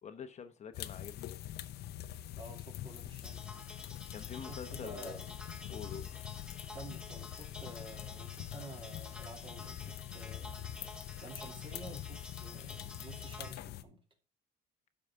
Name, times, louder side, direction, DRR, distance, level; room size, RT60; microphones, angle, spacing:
voice 1, 0.0-1.4 4.1-5.3 5.7-6.1, left 7 dB, 40° left, 8 dB, 0.9 m, -46 dB
sound 1, 0.7-13.8, left 13 dB, 70° left, 0.7 m, -44 dB
voice 2, 2.4-3.5 4.3-5.2 6.7-10.6 11.2-14.0, right 2 dB, 30° right, 1 dB, 2.9 m, -50 dB
sound 2, 3.2-13.5, left 2 dB, 5° right, 1.6 m, -51 dB
12.0 x 4.9 x 3.6 m, 0.31 s
cardioid pair, 110°, 17 cm